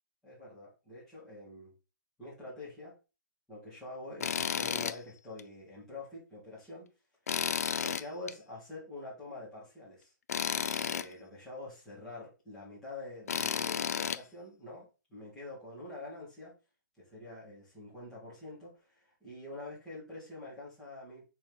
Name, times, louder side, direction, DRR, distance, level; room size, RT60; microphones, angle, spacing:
voice 1, 0.2-1.7 2.2-2.9 3.5-6.9 7.8-10.1 10.5-16.5 17.0-21.2, left 2 dB, 5° left, -11 dB, 3.7 m, -46 dB
Tools, 4.2-5.0 5.4-5.5 7.3-8.3 10.3-11.1 13.3-14.2, left 7 dB, 50° left, 0.5 m, -32 dB
6.0 x 4.7 x 5.6 m, 0.29 s
hypercardioid pair, 180°, 11 cm